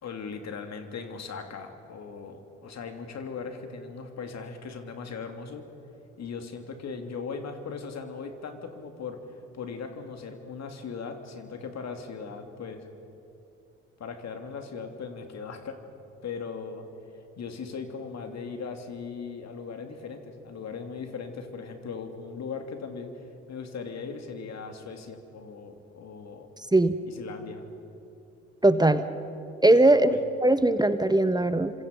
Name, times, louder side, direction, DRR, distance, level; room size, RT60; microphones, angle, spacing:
voice 1, 0.0-5.6 6.2-9.2 9.5-12.9 14.0-15.8 16.2-16.8 17.4-23.1 23.5-26.5 27.1-27.6 29.9-30.2, left 5 dB, 55° left, 5 dB, 3.0 m, -38 dB
voice 2, 28.6-29.0 29.6-31.7, right 2 dB, 15° right, 10 dB, 1.4 m, -20 dB
28.5 x 26.0 x 5.5 m, 2.9 s
hypercardioid pair, 50°, 32 cm